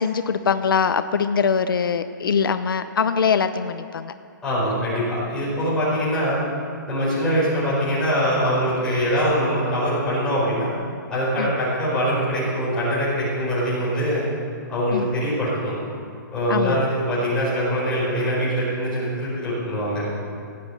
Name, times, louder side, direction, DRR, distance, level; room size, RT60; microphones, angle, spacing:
voice 1, 0.0-4.1 11.4-11.5 14.9-15.1 16.5-16.8, left 6 dB, 85° left, 11 dB, 0.8 m, -22 dB
voice 2, 4.4-6.4 6.9-10.7 11.1-14.3 14.7-15.8 16.3-20.0, equal, 5° left, -10 dB, 5.2 m, -23 dB
17.0 x 9.6 x 8.3 m, 2.4 s
hypercardioid pair, 180°, 11 cm